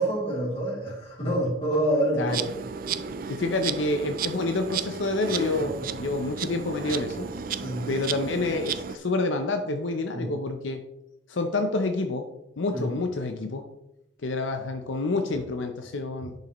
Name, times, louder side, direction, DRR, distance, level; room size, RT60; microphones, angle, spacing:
voice 1, 0.0-2.5 2.8-3.2 5.4-6.0 7.6-7.9 10.1-10.3 12.7-12.9, right 1 dB, 30° left, -5 dB, 3.1 m, -28 dB
Insect, 2.3-9.0, right 7 dB, 45° right, 0.4 m, -33 dB
voice 2, 3.3-5.7 6.0-7.3 7.9-10.8 11.3-12.3 12.6-13.7 14.2-16.3, left 2 dB, 85° left, 6 dB, 0.7 m, -28 dB
10.5 x 5.5 x 3.1 m, 0.87 s
head